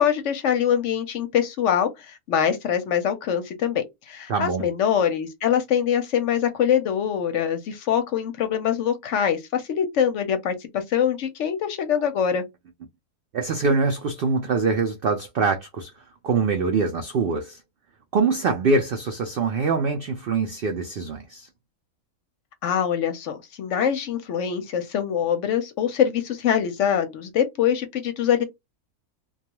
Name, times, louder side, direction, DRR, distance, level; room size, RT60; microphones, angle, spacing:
voice 1, 0.0-12.4 22.6-28.4, left 8 dB, 65° left, 0.8 m, -24 dB
voice 2, 4.3-4.7 13.3-15.9 16.2-17.6 18.1-21.5, right 4 dB, 75° right, 0.5 m, -24 dB
2.3 x 2.3 x 2.8 m
omnidirectional pair, 1.5 m